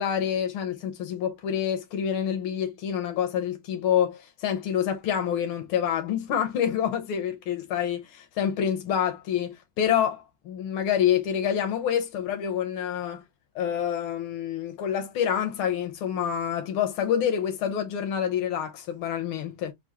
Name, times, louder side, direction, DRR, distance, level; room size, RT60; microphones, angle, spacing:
voice 1, 0.0-13.2 13.5-19.7, left 9 dB, 90° left, 1.7 m, -27 dB
6.2 x 2.3 x 2.8 m
omnidirectional pair, 2.2 m